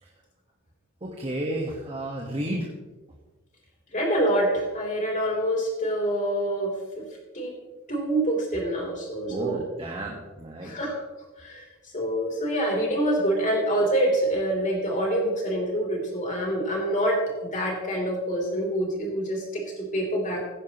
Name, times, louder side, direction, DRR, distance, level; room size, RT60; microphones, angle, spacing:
voice 1, 1.0-2.7 9.3-10.7, right 1 dB, 25° right, -1 dB, 1.4 m, -32 dB
voice 2, 3.9-7.0 7.3-7.5 7.9-9.6 10.6-11.0 11.4-11.7 11.9-20.4, right 1 dB, 35° left, 0 dB, 3.4 m, -26 dB
16.0 x 10.5 x 3.0 m, 1.1 s
head